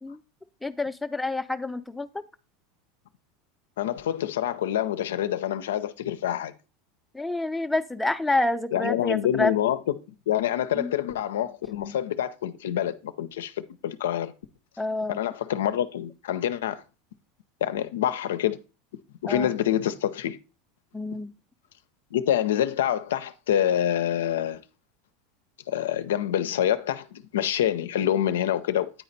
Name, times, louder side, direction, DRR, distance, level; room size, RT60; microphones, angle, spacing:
voice 1, 0.6-2.1 7.1-9.5 10.8-10.9 14.8-15.2 19.3-19.5 20.9-21.3, left 2 dB, 5° left, 0.5 m, -28 dB
voice 2, 3.8-6.5 8.7-9.8 10.3-14.3 15.1-16.8 17.6-18.6 19.2-20.4 22.1-24.6 25.7-28.9, left 11 dB, 85° left, 0.5 m, -26 dB
9.2 x 4.2 x 4.0 m
hypercardioid pair, 100°, 0 cm